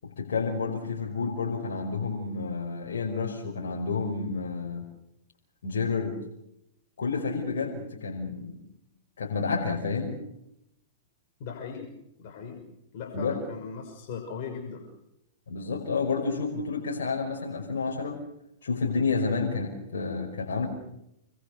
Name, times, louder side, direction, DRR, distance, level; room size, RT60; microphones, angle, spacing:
voice 1, 0.0-4.9 5.6-6.2 7.0-8.6 9.2-10.2 13.1-13.4 15.5-18.2 18.6-20.7, left 4 dB, 80° left, 0 dB, 5.4 m, -30 dB
voice 2, 11.4-11.9 12.2-12.6 12.9-14.9, left 6 dB, 55° left, 3 dB, 5.8 m, -38 dB
28.5 x 22.0 x 6.8 m, 0.84 s
hypercardioid pair, 130°, 0 cm